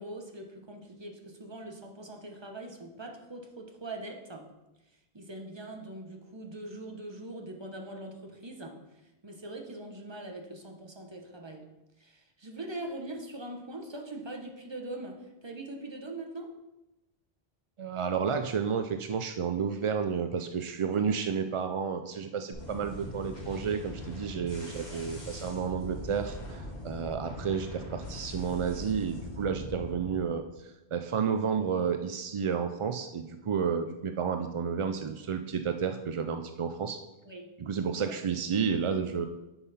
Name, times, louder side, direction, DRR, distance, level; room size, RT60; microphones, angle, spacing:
voice 1, 0.0-4.5 5.1-11.7 12.0-16.5 24.7-25.1 37.2-37.5 38.0-38.4, right 1 dB, 25° right, 2 dB, 1.0 m, -42 dB
voice 2, 17.8-30.4 30.9-37.0 37.6-39.3, right 6 dB, 55° right, 7 dB, 0.3 m, -31 dB
sound 1, 22.5-30.1, left 1 dB, 85° left, 2.5 m, -41 dB
9.6 x 5.6 x 4.2 m, 0.99 s
omnidirectional pair, 1.0 m